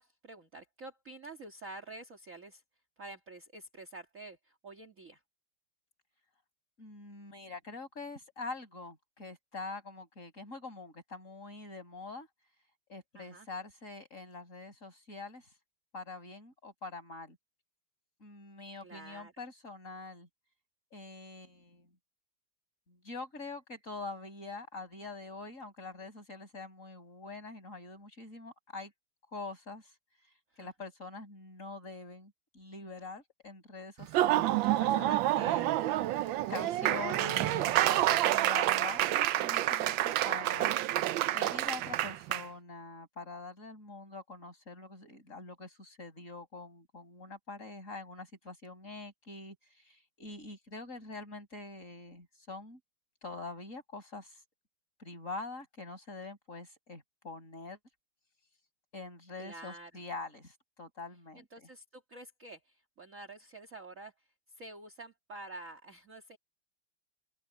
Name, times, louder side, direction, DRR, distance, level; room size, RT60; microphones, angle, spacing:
voice 1, 0.0-2.6 3.0-5.2 13.1-13.5 18.8-19.3 30.6-30.7 35.9-36.5 36.9-37.3 59.4-59.9 61.3-64.3 64.5-66.4, right 2 dB, 35° right, 2.5 m, -49 dB
voice 2, 6.8-12.3 12.9-15.5 15.9-17.4 18.2-20.3 20.9-21.9 22.9-28.9 29.3-29.9 30.6-35.7 36.5-40.8 41.3-52.8 53.2-54.4 55.0-57.8 58.9-61.7, left 3 dB, 35° left, 6.7 m, -44 dB
Laughter / Applause, 34.0-42.4, right 14 dB, 70° right, 1.3 m, -28 dB
open air
omnidirectional pair, 2.4 m